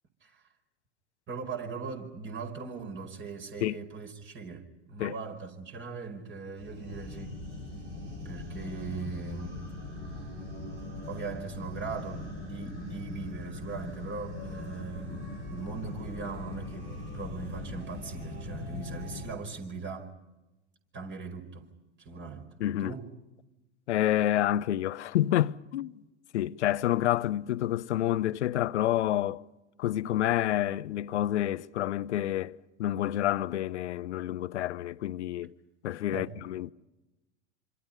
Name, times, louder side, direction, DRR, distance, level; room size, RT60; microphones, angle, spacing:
voice 1, 1.3-7.4 8.3-9.6 11.1-20.1 20.9-21.7 22.0-22.5 22.8-23.1 36.1-36.3, right 4 dB, 35° right, 5.3 m, -40 dB
sound 1, 6.6-19.3, left 2 dB, 90° right, 6.6 m, -40 dB
voice 2, 22.6-22.9 23.9-25.9 26.3-29.4 29.8-35.5 35.8-36.7, left 13 dB, 75° left, 0.8 m, -28 dB
27.0 x 26.5 x 5.5 m
hypercardioid pair, 85°, 34 cm